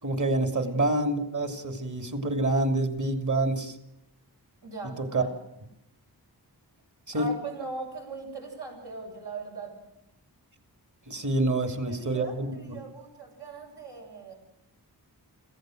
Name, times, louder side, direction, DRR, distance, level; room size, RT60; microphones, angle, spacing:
voice 1, 0.0-3.8 5.0-5.2 7.1-7.3 11.1-12.7, right 2 dB, 45° right, 7 dB, 2.8 m, -27 dB
voice 2, 4.6-5.3 7.1-9.7 11.7-14.3, right 3 dB, 80° right, 0 dB, 7.9 m, -40 dB
26.0 x 16.0 x 7.8 m, 0.89 s
wide cardioid pair, 100°, 40 cm